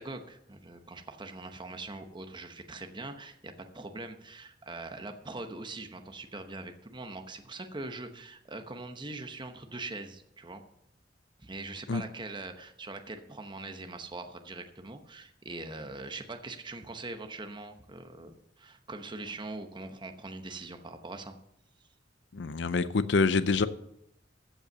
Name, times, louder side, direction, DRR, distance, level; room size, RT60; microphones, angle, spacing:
voice 1, 0.0-10.6 11.4-18.3 18.6-21.3, right 2 dB, 25° right, 0.9 m, -42 dB
voice 2, 22.3-23.7, left 4 dB, 70° left, 0.5 m, -26 dB
15.0 x 5.6 x 6.8 m
head